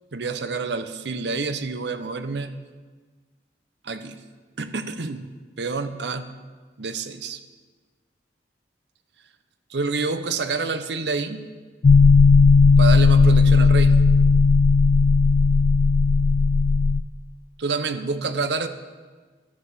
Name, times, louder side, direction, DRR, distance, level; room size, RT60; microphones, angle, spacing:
voice 1, 0.1-2.5 3.8-4.2 4.6-5.3 5.6-6.3 6.8-7.4 9.7-11.4 12.8-14.0 17.6-18.7, right 4 dB, 70° right, 10 dB, 0.7 m, -27 dB
sound 1, 11.8-17.0, left 4 dB, 45° left, 0.3 m, -15 dB
12.0 x 6.7 x 6.7 m, 1.4 s
head